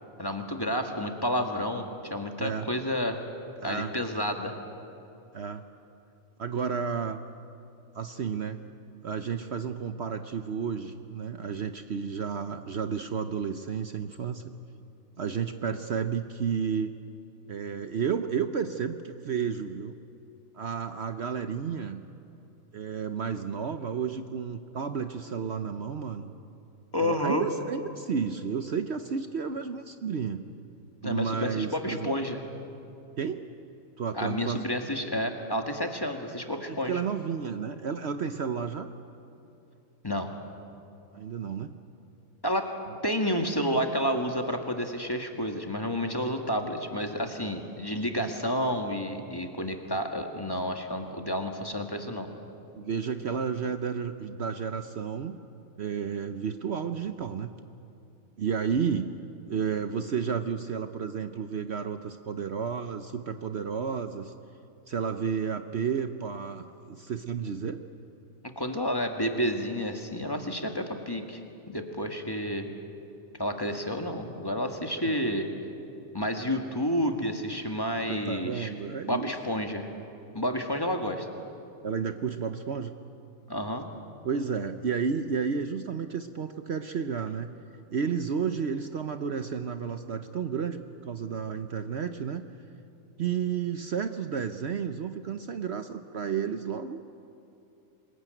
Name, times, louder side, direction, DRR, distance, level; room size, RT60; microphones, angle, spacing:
voice 1, 0.2-3.2 3.6-4.6 26.9-27.5 31.0-32.4 34.1-37.0 40.0-40.3 42.4-42.7 43.0-52.3 68.6-71.4 71.7-72.7 73.4-75.5 76.1-78.7 79.1-79.9 80.3-81.3 83.5-83.9, equal, 15° left, 4 dB, 1.7 m, -30 dB
voice 2, 3.6-3.9 5.3-5.6 6.4-7.2 7.9-8.7 9.0-14.4 15.2-16.9 17.5-19.9 20.5-22.0 22.7-26.3 27.0-30.4 31.0-32.1 33.2-33.4 34.0-34.6 36.7-38.9 41.1-41.7 48.2-48.3 52.8-55.4 55.8-57.5 58.4-59.1 59.5-64.3 64.9-67.8 75.0-75.2 78.1-79.3 81.8-83.0 84.2-87.5 87.9-92.4 93.2-97.1, right 6 dB, 55° right, 8 dB, 1.0 m, -32 dB
25.0 x 21.0 x 9.1 m, 2.8 s
omnidirectional pair, 1.4 m